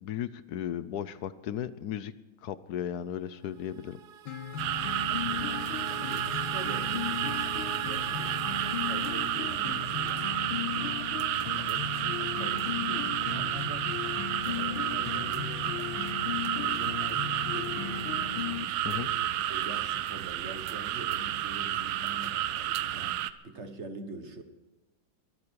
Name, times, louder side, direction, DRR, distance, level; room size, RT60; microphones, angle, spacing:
voice 1, 0.0-2.1 2.4-4.0 18.8-19.2, left 10 dB, 65° left, 15 dB, 1.1 m, -35 dB
sound 1, 3.5-10.7, right 8 dB, 60° right, 1.3 m, -42 dB
sound 2, 4.3-18.7, left 9 dB, 85° left, 1.8 m, -36 dB
sound 3, 4.6-23.3, right 12 dB, 85° right, 1.5 m, -31 dB
voice 2, 5.2-7.5 7.8-11.0 11.5-13.9 14.4-15.7 16.5-18.4 18.8-24.4, right 3 dB, 35° right, 7 dB, 1.6 m, -45 dB
22.5 x 13.5 x 4.7 m, 1.2 s
omnidirectional pair, 2.2 m